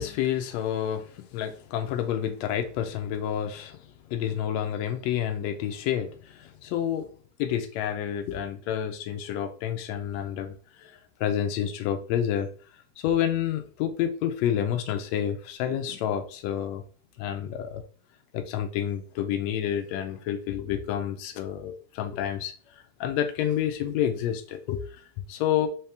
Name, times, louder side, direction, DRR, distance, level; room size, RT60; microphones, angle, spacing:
voice 1, 0.0-3.8 4.1-7.1 7.4-12.5 13.0-16.8 17.2-17.8 18.3-22.5 23.0-25.7, left 10 dB, 85° left, 1.5 m, -29 dB
5.5 x 2.9 x 3.3 m
omnidirectional pair, 3.7 m